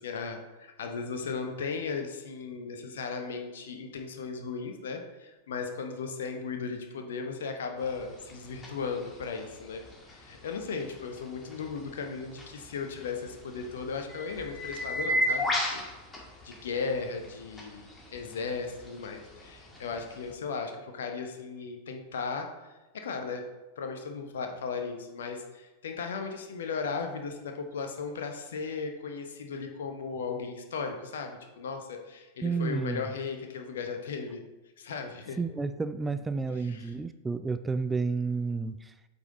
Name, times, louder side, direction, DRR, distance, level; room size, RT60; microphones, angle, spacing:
voice 1, 0.0-9.8 10.1-15.8 16.4-23.5 23.8-34.4 34.8-35.4 36.5-36.9, left 5 dB, 60° left, 5 dB, 0.9 m, -36 dB
sound 1, 7.8-20.3, equal, 15° left, 1.9 m, -37 dB
voice 2, 32.4-33.0 35.4-38.9, right 4 dB, 10° right, 11 dB, 0.3 m, -31 dB
8.1 x 5.5 x 3.8 m, 1.1 s
figure-of-eight pair, 90°, 0 cm